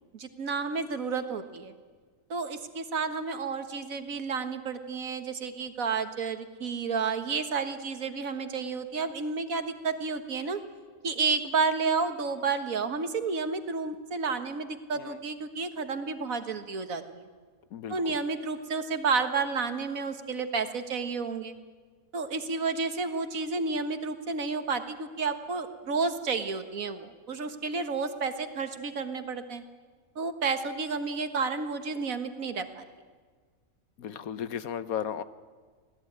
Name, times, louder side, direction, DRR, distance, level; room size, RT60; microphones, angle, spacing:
voice 1, 0.1-1.7 2.3-10.6 11.0-17.3 17.9-21.6 22.1-29.6 30.2-32.8, right 4 dB, 75° right, 8 dB, 1.9 m, -31 dB
voice 2, 17.7-18.0 34.0-35.2, left 8 dB, 85° left, 14 dB, 1.4 m, -35 dB
25.0 x 17.5 x 9.4 m, 1.5 s
omnidirectional pair, 1.5 m